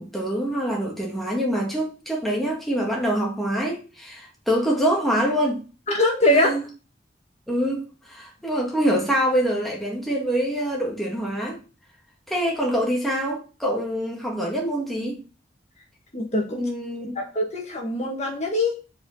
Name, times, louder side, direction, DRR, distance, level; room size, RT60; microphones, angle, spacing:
voice 1, 0.0-5.6 6.3-6.7 7.5-11.6 12.3-15.2 16.5-17.2, equal, ahead, 1.7 m, -25 dB
voice 2, 5.9-6.5 16.1-16.6 17.2-18.7, left 1 dB, 40° left, 1.8 m, -22 dB
5.0 x 5.0 x 6.2 m
head